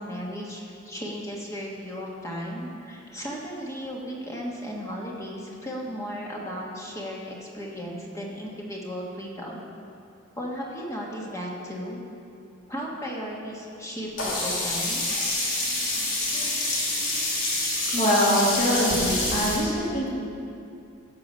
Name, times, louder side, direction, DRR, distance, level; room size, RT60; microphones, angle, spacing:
voice 1, 0.0-9.6 10.4-12.0 12.7-15.1, equal, 15° left, -3 dB, 1.4 m, -35 dB
Sink (filling or washing), 14.2-19.6, left 2 dB, 75° left, 2.6 m, -27 dB
voice 2, 17.9-20.2, equal, 40° left, -6 dB, 2.8 m, -23 dB
15.5 x 6.6 x 5.3 m, 2.6 s
head